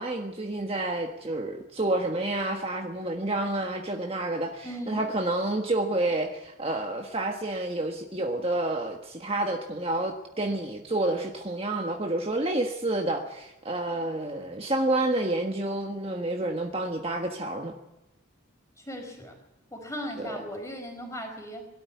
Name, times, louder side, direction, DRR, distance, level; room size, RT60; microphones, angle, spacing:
voice 1, 0.0-17.7 20.2-20.3, right 2 dB, 30° right, 2 dB, 1.5 m, -29 dB
voice 2, 4.6-5.0 18.8-19.3 19.7-21.7, equal, 15° left, 3 dB, 4.8 m, -37 dB
21.5 x 13.0 x 9.4 m, 0.92 s
head